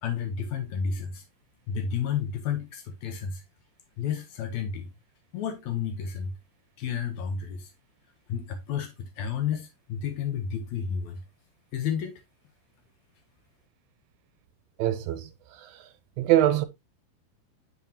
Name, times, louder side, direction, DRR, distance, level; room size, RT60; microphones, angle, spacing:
voice 1, 0.0-1.2 1.7-3.4 4.0-4.9 5.3-6.3 6.8-7.7 8.3-11.2 11.7-12.2, left 7 dB, 80° left, 1.6 m, -31 dB
voice 2, 14.8-15.8 16.2-16.7, right 13 dB, 85° right, 2.4 m, -24 dB
11.0 x 4.1 x 2.7 m
omnidirectional pair, 4.3 m